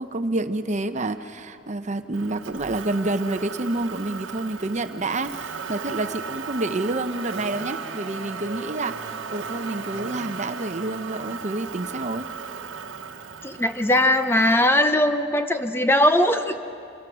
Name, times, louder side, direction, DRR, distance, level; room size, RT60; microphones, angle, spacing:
voice 1, 0.0-12.3, right 2 dB, 40° right, 9 dB, 0.8 m, -28 dB
Motor vehicle (road), 2.1-14.7, right 5 dB, 85° right, 1.2 m, -36 dB
Wind instrument woodwind instrument, 7.1-11.2, equal, 5° right, 4.2 m, -47 dB
voice 2, 13.4-16.6, left 1 dB, 10° left, 8 dB, 0.7 m, -20 dB
26.5 x 22.0 x 6.2 m, 2.6 s
head